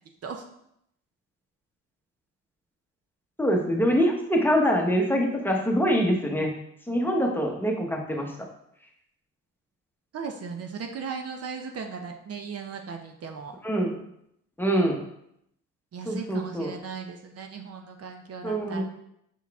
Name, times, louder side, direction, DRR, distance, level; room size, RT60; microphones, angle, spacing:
voice 1, 3.4-6.5 6.9-8.3 13.6-13.9 14.6-15.0 16.1-16.7 18.4-18.8, equal, 5° left, 0 dB, 1.1 m, -24 dB
voice 2, 10.1-13.6 15.9-18.8, right 5 dB, 55° right, 4 dB, 0.8 m, -37 dB
5.9 x 4.5 x 3.5 m, 0.75 s
cardioid pair, 90°, 30 cm